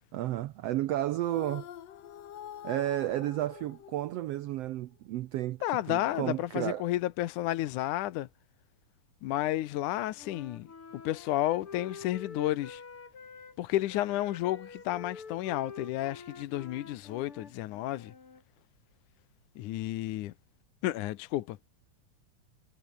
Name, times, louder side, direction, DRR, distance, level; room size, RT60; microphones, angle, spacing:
voice 1, 0.1-1.7 2.6-5.6 5.9-6.9, right 14 dB, 85° right, 1.3 m, -32 dB
sound 1, 1.2-4.6, left 10 dB, 60° left, 2.3 m, -46 dB
voice 2, 5.6-8.3 9.2-10.7 10.9-12.8 13.6-18.1 19.6-20.3 20.8-21.6, left 15 dB, 75° left, 2.3 m, -31 dB
Wind instrument woodwind instrument, 10.2-13.6 13.9-18.4, left 5 dB, 40° left, 4.2 m, -48 dB
omnidirectional pair, 3.7 m